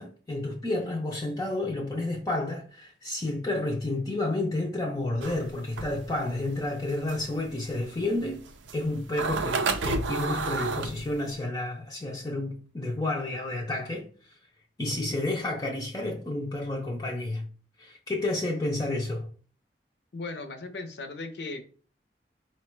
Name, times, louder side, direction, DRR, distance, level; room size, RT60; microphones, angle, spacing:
voice 1, 0.0-8.5 8.7-14.3 14.8-17.5 17.8-19.3, left 2 dB, 20° left, 0.4 m, -30 dB
sound 1, 5.2-11.3, right 4 dB, 85° right, 0.5 m, -31 dB
voice 2, 20.1-21.6, left 3 dB, 65° left, 0.6 m, -37 dB
4.4 x 2.1 x 4.4 m
head